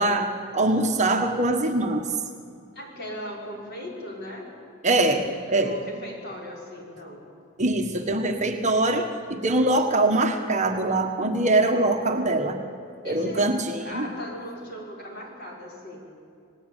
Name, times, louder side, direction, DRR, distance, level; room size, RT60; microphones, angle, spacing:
voice 1, 0.0-2.2 4.8-5.2 5.5-5.8 7.6-12.6 13.0-14.1, right 2 dB, 35° right, 4 dB, 1.4 m, -23 dB
voice 2, 2.7-4.5 4.8-7.2 13.0-13.5 13.8-16.0, equal, 50° left, -1 dB, 6.2 m, -38 dB
27.5 x 19.0 x 9.0 m, 2.4 s
head